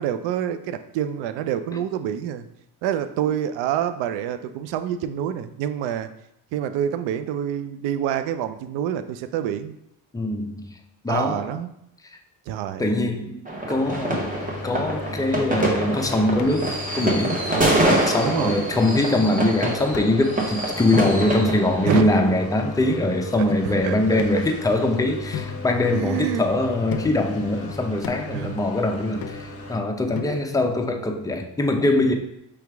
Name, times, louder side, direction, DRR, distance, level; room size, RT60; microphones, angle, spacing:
voice 1, 0.0-2.5 2.8-6.1 6.5-9.8 11.1-11.7 12.5-12.9 17.5-17.9 18.2-18.7 21.8-22.1 23.6-24.2 25.9-26.5 27.4-27.8 28.3-28.6 30.2-30.4, right 10 dB, 80° right, 10 dB, 0.5 m, -27 dB
voice 2, 10.1-10.7 11.0-11.5 12.8-13.4 13.7-14.3 14.6-17.4 17.9-32.1, left 2 dB, 10° left, 3 dB, 0.5 m, -22 dB
sound 1, 13.5-22.0, right 1 dB, 20° right, 1.1 m, -25 dB
sound 2, 13.8-29.8, left 2 dB, 30° left, 1.3 m, -36 dB
sound 3, 15.6-15.9 16.4-16.6 17.1-17.4 17.9-18.0 18.5-18.7 19.2-19.5 19.9-20.3 20.9-21.4 22.0-22.8 23.5-23.6 24.2-24.9 25.3-26.4 26.9-27.3 28.0-28.4 29.2-29.7 30.1-30.7, left 7 dB, 55° left, 0.6 m, -37 dB
4.8 x 3.1 x 3.4 m, 0.78 s
supercardioid pair, 80°, 43 cm